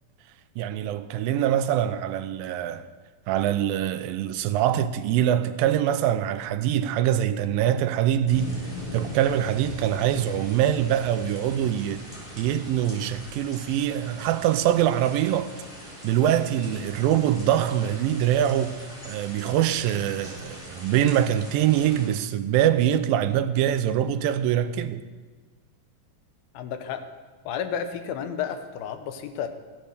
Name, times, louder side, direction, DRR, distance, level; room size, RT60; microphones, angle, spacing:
voice 1, 0.6-2.9 3.3-8.6 8.9-12.1 12.4-15.6 16.0-25.0, right 11 dB, 85° right, 2.3 m, -24 dB
sound 1, 8.2-22.1, equal, 15° left, 3.9 m, -41 dB
voice 2, 26.5-27.0 27.5-29.5, left 8 dB, 90° left, 2.8 m, -31 dB
15.5 x 8.9 x 6.6 m
omnidirectional pair, 4.1 m